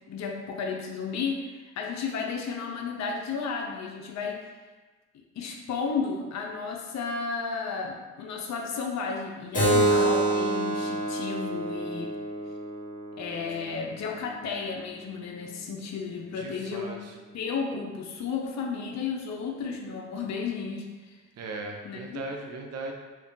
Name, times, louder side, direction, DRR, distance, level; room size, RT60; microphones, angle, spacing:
voice 1, 0.1-4.4 5.1-12.1 13.2-17.0 17.3-21.2 21.8-22.2, left 5 dB, 65° left, 1 dB, 0.5 m, -33 dB
Keyboard (musical), 9.5-14.7, right 1 dB, 25° left, 1.3 m, -28 dB
voice 2, 16.2-17.1 21.4-22.9, right 2 dB, 55° right, 1 dB, 0.6 m, -38 dB
2.6 x 2.2 x 3.6 m, 1.3 s
cardioid pair, 90°, 30 cm